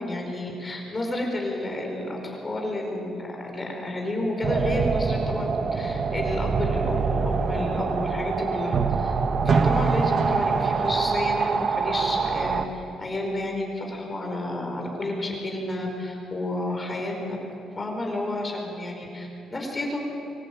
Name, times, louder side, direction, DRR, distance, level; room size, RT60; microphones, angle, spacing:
voice 1, 0.0-9.1 9.4-17.4 17.7-20.0, left 1 dB, 25° left, 1 dB, 4.9 m, -30 dB
sound 1, 4.4-12.7, right 5 dB, 50° right, 1.1 m, -24 dB
25.0 x 13.5 x 8.8 m, 2.8 s
cardioid pair, 90°, 0 cm